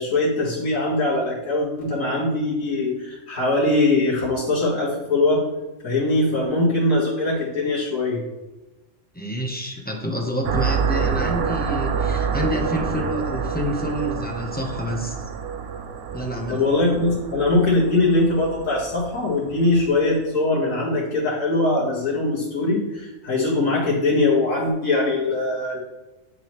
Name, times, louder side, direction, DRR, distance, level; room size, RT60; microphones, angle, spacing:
voice 1, 0.0-5.4 5.8-8.2 16.5-25.8, left 2 dB, 70° left, -7 dB, 2.2 m, -21 dB
voice 2, 9.1-15.2 16.1-16.6, equal, 10° left, 0 dB, 0.7 m, -28 dB
sound 1, 10.4-20.0, right 6 dB, 60° right, 0.7 m, -28 dB
9.6 x 3.8 x 3.1 m, 1.1 s
omnidirectional pair, 1.4 m